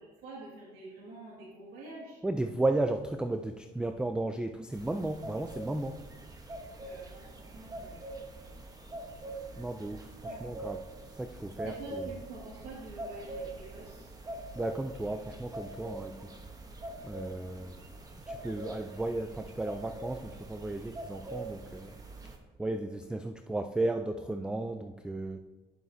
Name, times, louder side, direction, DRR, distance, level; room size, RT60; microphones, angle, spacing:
voice 1, 0.2-2.2 6.8-8.1 10.3-10.4 11.6-14.1, right 2 dB, 85° right, -6 dB, 2.0 m, -47 dB
voice 2, 2.2-6.0 9.6-10.8 11.2-11.7 14.6-16.3 17.0-17.8 18.3-21.9 22.6-25.4, right 2 dB, 5° right, 8 dB, 0.3 m, -34 dB
sound 1, 4.7-22.4, right 2 dB, 20° right, 1.0 m, -44 dB
10.5 x 7.4 x 2.7 m, 1.2 s
cardioid pair, 110°, 17 cm